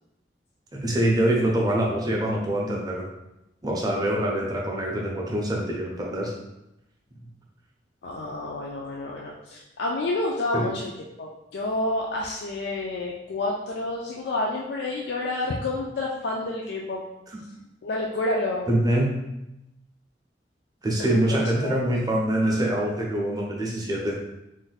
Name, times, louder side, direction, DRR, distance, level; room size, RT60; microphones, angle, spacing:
voice 1, 0.7-3.1 3.6-6.3 10.5-10.7 18.7-19.2 20.8-24.2, right 1 dB, 20° right, -3 dB, 0.6 m, -24 dB
voice 2, 8.0-10.9 11.2-17.0 17.8-18.7 21.0-21.8, left 2 dB, 65° left, -2 dB, 0.3 m, -29 dB
2.5 x 2.2 x 4.0 m, 0.90 s
head